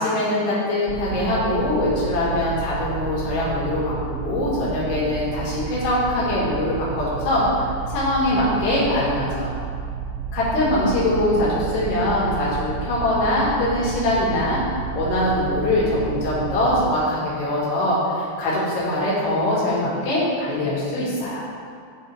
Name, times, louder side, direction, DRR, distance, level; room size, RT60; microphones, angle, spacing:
voice 1, 0.0-7.6 7.9-9.5 10.3-14.6 15.0-21.4, left 1 dB, 75° left, -7 dB, 4.0 m, -22 dB
sound 1, 0.9-17.0, right 7 dB, 80° right, 2.4 m, -31 dB
11.0 x 4.3 x 4.6 m, 2.4 s
omnidirectional pair, 4.9 m